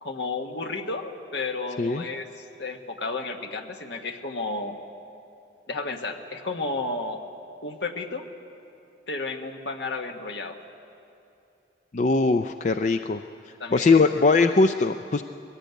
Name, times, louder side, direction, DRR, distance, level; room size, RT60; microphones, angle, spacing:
voice 1, 0.0-4.8 5.7-7.2 7.6-8.2 9.1-10.6 13.6-14.1, left 3 dB, 70° left, 4 dB, 1.4 m, -32 dB
voice 2, 11.9-13.2 13.7-15.2, left 3 dB, 40° left, 8 dB, 0.4 m, -21 dB
21.0 x 15.5 x 9.2 m, 2.7 s
head